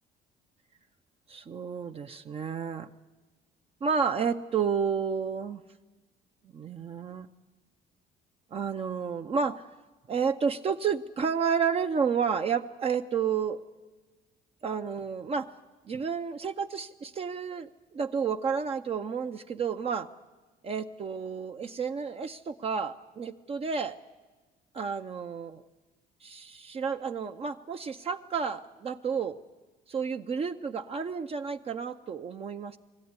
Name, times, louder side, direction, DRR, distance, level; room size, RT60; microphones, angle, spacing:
voice 1, 1.3-2.9 3.8-5.6 6.5-7.3 8.5-9.6 10.1-13.6 14.6-15.5 15.9-20.1 20.6-24.0 24.7-25.6 26.2-29.4 29.9-32.8, right 6 dB, 35° right, 6 dB, 0.6 m, -31 dB
21.5 x 14.0 x 9.6 m, 1.3 s
cardioid pair, 110°, 17 cm